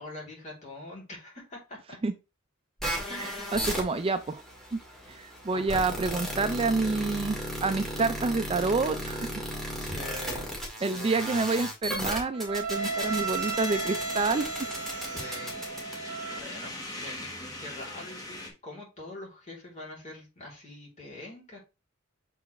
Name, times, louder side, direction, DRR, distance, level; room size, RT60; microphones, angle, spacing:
voice 1, 0.0-2.0 3.1-3.6 5.5-5.6 9.7-10.5 10.8-11.2 15.0-15.8 16.3-21.6, left 1 dB, 35° left, -3 dB, 3.1 m, -43 dB
sound 1, 2.8-16.4, right 1 dB, ahead, 2.0 m, -34 dB
voice 2, 3.2-4.4 4.7-4.8 5.1-9.3 10.8-14.5, right 3 dB, 25° right, 10 dB, 0.4 m, -28 dB
sound 2, 12.7-18.5, left 1 dB, 20° left, 1.4 m, -41 dB
7.0 x 4.6 x 3.1 m, 0.27 s
head